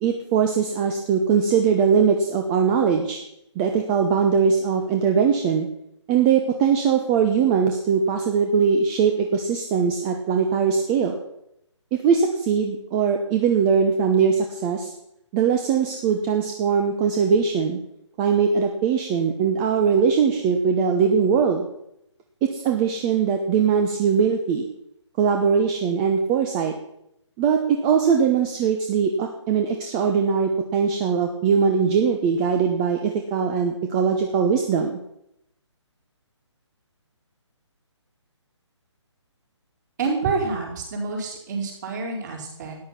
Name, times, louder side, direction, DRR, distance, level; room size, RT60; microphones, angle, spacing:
voice 1, 0.0-3.2 3.6-5.7 6.1-11.1 11.9-14.9 15.3-17.8 18.2-21.7 22.4-24.7 25.2-26.7 27.4-35.0, right 6 dB, 15° right, 4 dB, 0.9 m, -21 dB
voice 2, 40.0-42.8, right 4 dB, 35° right, -1 dB, 4.8 m, -27 dB
13.5 x 10.5 x 5.9 m, 0.78 s
hypercardioid pair, 160°, 16 cm